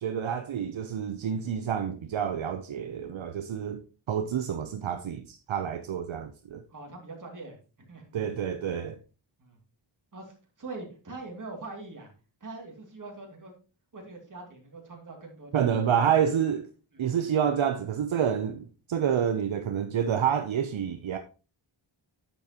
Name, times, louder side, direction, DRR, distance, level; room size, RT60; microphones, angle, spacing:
voice 1, 0.0-3.8 4.1-6.6 8.1-9.0 15.5-16.7 17.0-21.2, right 8 dB, 75° right, 0.8 m, -28 dB
voice 2, 6.7-7.6 7.9-8.2 9.4-9.6 10.1-12.1 12.4-13.5 13.9-15.8 16.9-17.0, right 3 dB, 40° right, 2.6 m, -43 dB
9.9 x 7.2 x 2.9 m
wide cardioid pair, 155°, 48 cm